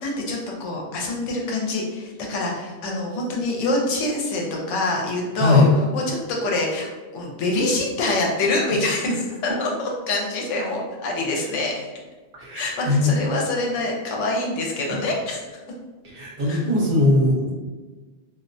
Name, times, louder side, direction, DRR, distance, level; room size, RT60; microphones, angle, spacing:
voice 1, 0.0-4.4 4.7-5.6 5.9-6.9 7.1-11.8 12.5-15.4 16.4-16.6, left 2 dB, 85° left, -1 dB, 0.9 m, -25 dB
voice 2, 5.4-5.7 12.4-13.1 16.0-17.5, left 2 dB, 45° right, -6 dB, 0.9 m, -19 dB
2.3 x 2.1 x 2.6 m, 1.3 s
omnidirectional pair, 1.2 m